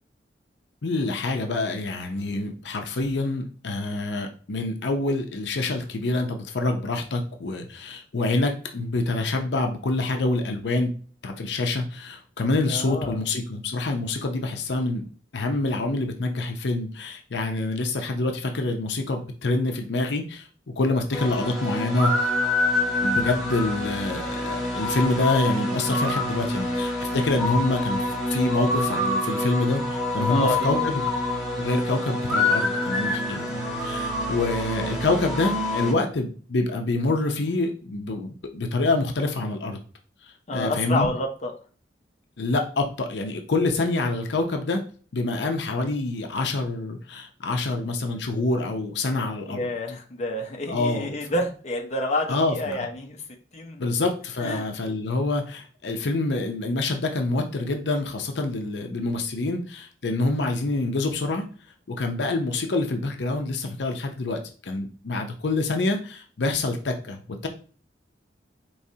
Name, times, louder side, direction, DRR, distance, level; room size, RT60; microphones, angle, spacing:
voice 1, 0.8-10.9 11.2-15.1 15.3-20.5 20.8-22.3 23.0-31.0 31.6-39.8 40.2-41.1 42.4-44.8 45.1-49.6 50.7-51.1 52.3-52.9 53.8-61.4 61.9-67.5, left 2 dB, 75° left, 4 dB, 0.6 m, -26 dB
voice 2, 12.7-13.2 30.3-30.9 40.5-41.5 49.5-53.2 53.5-53.9 54.4-54.7, left 1 dB, 40° left, 1 dB, 0.7 m, -28 dB
sound 1, 21.1-35.9, left 2 dB, ahead, 1.7 m, -26 dB
4.8 x 3.1 x 2.8 m, 0.41 s
head